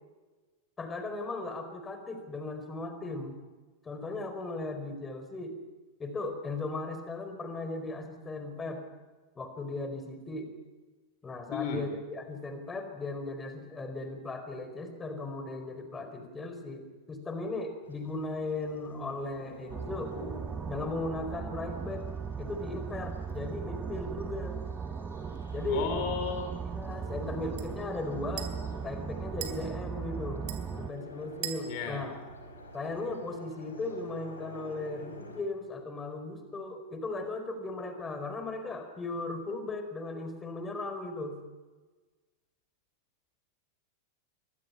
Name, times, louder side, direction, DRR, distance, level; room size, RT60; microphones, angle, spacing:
voice 1, 0.8-3.4 3.8-5.6 6.0-8.8 9.3-10.5 11.2-20.2 20.7-22.1 22.4-24.6 25.5-26.0 26.7-28.5 28.8-30.4 30.8-32.1 32.7-41.4, left 2 dB, 15° left, 7 dB, 4.7 m, -37 dB
sound 1, 17.8-35.4, equal, 75° left, 5.7 m, -48 dB
sound 2, 19.7-30.9, right 6 dB, 20° right, 0.7 m, -38 dB
sound 3, 25.3-33.1, right 12 dB, 50° right, 3.3 m, -47 dB
voice 2, 25.7-26.5 31.7-32.0, left 6 dB, 45° left, 7 dB, 4.0 m, -33 dB
28.5 x 24.5 x 5.9 m, 1.3 s
figure-of-eight pair, 90°, 0 cm